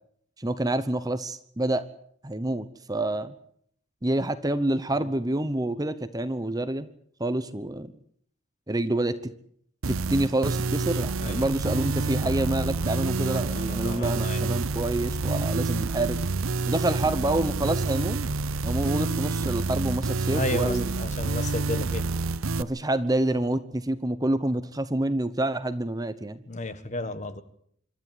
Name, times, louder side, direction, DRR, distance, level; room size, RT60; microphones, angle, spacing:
voice 1, 0.4-1.8 2.2-3.3 4.0-6.9 7.2-7.9 8.7-9.3 9.9-16.2 16.7-18.2 18.6-20.9 22.6-26.4, right 1 dB, 15° right, 12 dB, 0.9 m, -27 dB
sound 1, 9.8-22.6, right 3 dB, 75° right, 0.9 m, -28 dB
voice 2, 13.4-14.5 20.3-22.0 26.5-27.4, left 2 dB, 35° left, 12 dB, 1.5 m, -33 dB
26.5 x 12.5 x 9.2 m, 0.66 s
head